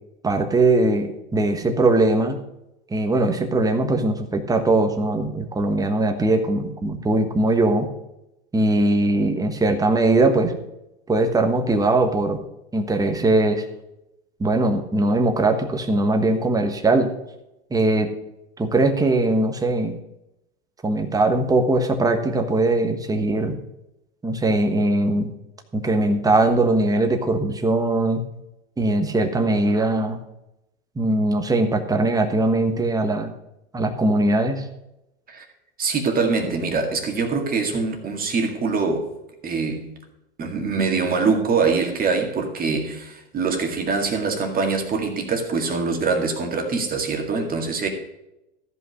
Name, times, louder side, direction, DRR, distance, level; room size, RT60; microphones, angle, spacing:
voice 1, 0.2-2.4 2.9-7.9 8.5-10.5 11.1-12.4 12.7-13.6 14.4-17.1 17.7-18.1 18.6-20.0 20.8-23.6 24.2-25.3 25.7-28.2 28.8-30.2 31.0-33.3 33.7-34.6, right 2 dB, 10° right, 1.3 m, -20 dB
voice 2, 35.8-39.1 39.4-39.9 40.4-47.9, right 4 dB, 25° right, 2.0 m, -23 dB
14.0 x 5.5 x 6.4 m
hypercardioid pair, 115°, 33 cm